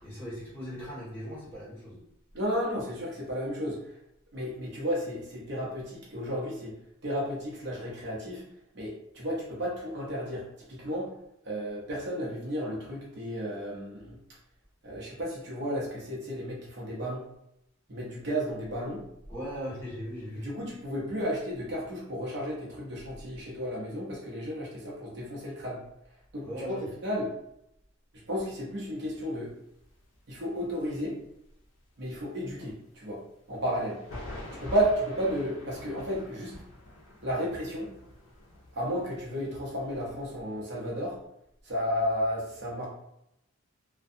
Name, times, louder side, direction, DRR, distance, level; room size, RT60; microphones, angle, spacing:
voice 1, 0.0-2.0 19.3-20.5 26.4-26.9, equal, 10° left, -11 dB, 1.3 m, -38 dB
voice 2, 2.3-4.0 4.3-6.7 7.0-8.4 8.7-11.1 11.4-14.2 14.8-17.2 17.9-19.0 20.4-25.8 26.3-26.8 27.0-27.3 28.3-29.5 30.3-31.2 32.0-33.2 33.5-34.0 34.6-36.5 37.2-37.9 38.7-41.2 41.6-42.9, equal, 50° right, -4 dB, 0.6 m, -33 dB
sound 1, 28.9-30.6 30.9-31.3 31.6-31.7 32.1-32.2 33.7-40.4, left 1 dB, 75° left, 0.6 m, -46 dB
2.5 x 2.2 x 2.6 m, 0.78 s
head